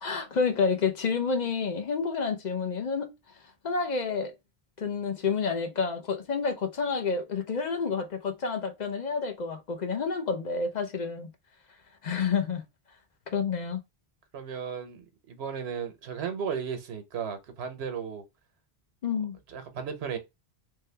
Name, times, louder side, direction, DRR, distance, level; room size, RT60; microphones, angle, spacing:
voice 1, 0.0-3.1 3.6-4.3 4.8-11.3 12.0-12.6 13.3-13.8 19.0-19.4, left 5 dB, 50° left, 0.7 m, -29 dB
voice 2, 14.3-18.2 19.5-20.2, right 7 dB, 85° right, 1.0 m, -35 dB
3.3 x 2.2 x 3.2 m
omnidirectional pair, 1.1 m